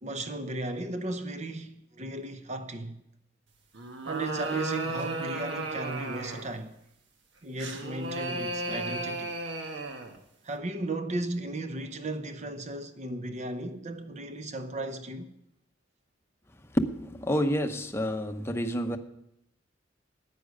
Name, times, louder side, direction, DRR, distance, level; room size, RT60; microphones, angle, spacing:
voice 1, 0.0-2.9 4.0-6.8 7.4-9.3 10.4-15.3, right 2 dB, 40° right, 0.8 m, -35 dB
sound 1, 3.7-6.6 7.6-10.2, right 2 dB, 75° right, 1.4 m, -35 dB
voice 2, 16.7-19.0, equal, 15° left, 0.8 m, -28 dB
9.9 x 9.4 x 6.5 m
head